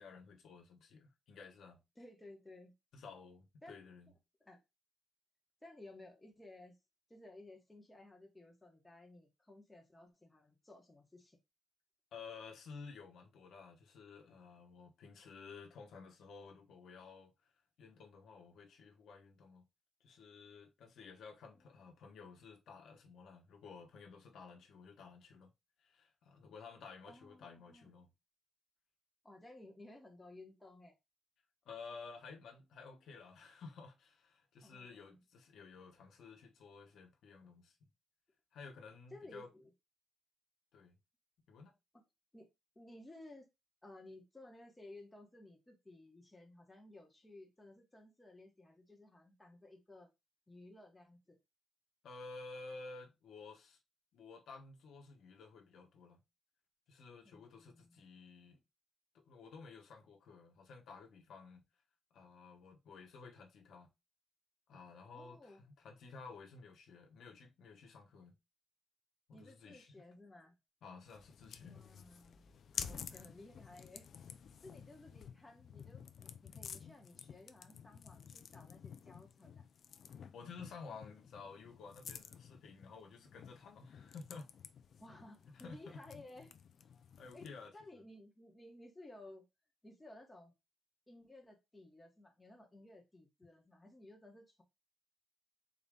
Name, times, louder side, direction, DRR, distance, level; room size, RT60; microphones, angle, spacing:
voice 1, 0.0-1.8 2.9-4.1 12.1-17.3 17.8-19.6 20.0-25.5 25.8-28.1 31.6-37.8 38.5-39.5 40.7-41.0 41.5-41.7 52.0-53.8 54.1-56.2 56.9-58.6 59.1-61.6 62.1-63.9 64.7-68.3 69.3-69.9 70.8-71.8 72.7-72.8 73.1-73.2 80.3-84.5 85.5-86.0 87.2-87.7, left 4 dB, 80° left, 0.9 m, -53 dB
voice 2, 2.0-2.7 3.6-3.8 4.4-4.6 5.6-6.8 7.1-11.4 27.1-27.9 29.2-30.9 34.6-35.2 39.1-39.7 41.9-42.0 42.3-42.5 42.7-43.5 43.8-50.1 50.5-51.4 57.2-58.1 65.1-65.6 69.3-70.6 71.7-74.1 74.6-79.6 85.0-86.5 87.3-87.5 87.7-89.4 89.8-90.5 91.1-94.6, left 2 dB, 10° left, 1.0 m, -57 dB
sound 1, 71.1-87.7, left 7 dB, 55° left, 0.4 m, -51 dB
4.0 x 2.4 x 3.5 m
cardioid pair, 140°, 0 cm